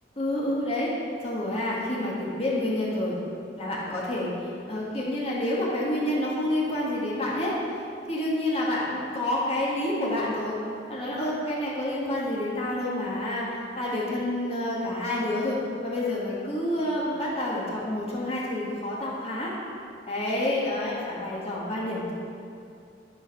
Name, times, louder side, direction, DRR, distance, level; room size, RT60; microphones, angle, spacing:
voice 1, 0.2-0.9 1.2-3.2 3.6-4.3 4.7-7.6 8.1-10.6 10.9-15.6 15.8-19.5 20.1-22.1, left 1 dB, 35° left, -6 dB, 2.0 m, -28 dB
12.5 x 5.1 x 5.9 m, 2.4 s
head